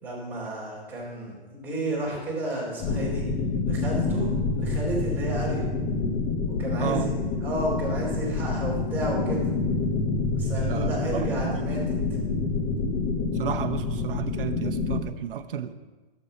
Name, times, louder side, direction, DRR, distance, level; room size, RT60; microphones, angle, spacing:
voice 1, 0.0-3.2 3.7-4.3 4.5-5.6 6.6-7.2 7.4-9.4 10.3-12.0, right 1 dB, 5° right, -7 dB, 3.0 m, -31 dB
sound 1, 2.8-15.0, left 3 dB, 15° left, 0.5 m, -27 dB
voice 2, 10.7-11.7 13.3-15.7, right 9 dB, 60° right, 8 dB, 0.8 m, -32 dB
11.0 x 7.0 x 4.2 m, 1.2 s
hypercardioid pair, 150°, 30 cm